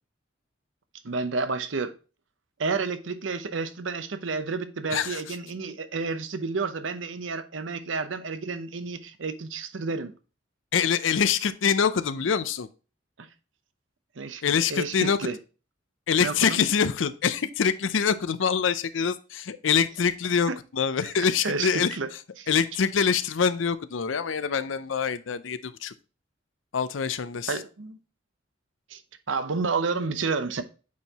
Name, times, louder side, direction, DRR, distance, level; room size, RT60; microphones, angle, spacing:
voice 1, 1.0-2.0 2.6-10.1 13.2-13.3 14.2-14.4 14.7-15.4 16.2-16.6 20.5-20.6 21.4-22.1 22.4-22.5 27.5-28.0 28.9-29.0 29.3-30.6, right 4 dB, 80° right, 0.8 m, -30 dB
voice 2, 4.9-5.4 10.7-12.7 14.4-15.2 16.1-22.0 22.5-25.9 26.7-27.6, left 6 dB, 85° left, 0.5 m, -25 dB
8.3 x 4.6 x 2.9 m
head